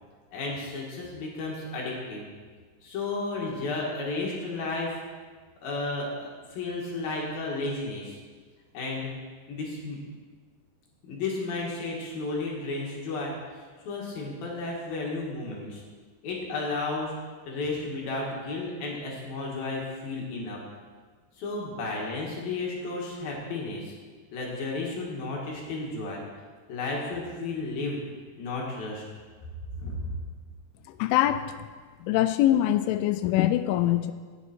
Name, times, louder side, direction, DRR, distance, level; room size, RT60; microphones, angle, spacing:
voice 1, 0.3-2.3 2.8-5.0 5.6-8.2 8.7-9.1 9.5-10.0 11.0-15.8 16.2-17.1 17.5-20.6 21.4-23.9 24.3-26.2 26.7-28.0 28.4-29.0 29.7-30.1, left 3 dB, 60° left, -3 dB, 3.3 m, -33 dB
voice 2, 30.9-31.6 32.0-34.1, left 13 dB, 85° left, 11 dB, 3.0 m, -23 dB
18.0 x 8.2 x 4.4 m, 1.5 s
omnidirectional pair, 5.5 m